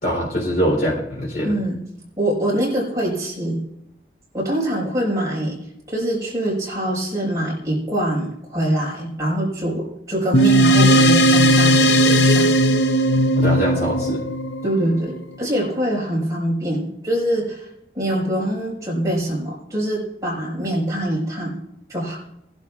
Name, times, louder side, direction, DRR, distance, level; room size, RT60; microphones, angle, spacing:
voice 1, 0.0-1.6 13.4-14.2, equal, 55° left, -3 dB, 3.5 m, -23 dB
voice 2, 1.4-1.8 2.2-3.6 4.3-5.6 5.9-12.5 14.6-17.7 17.9-21.6 21.9-22.2, right 1 dB, 20° right, -5 dB, 4.9 m, -24 dB
sound 1, 10.3-15.1, equal, 80° left, 0.6 m, -16 dB
20.5 x 11.5 x 2.4 m, 0.80 s
head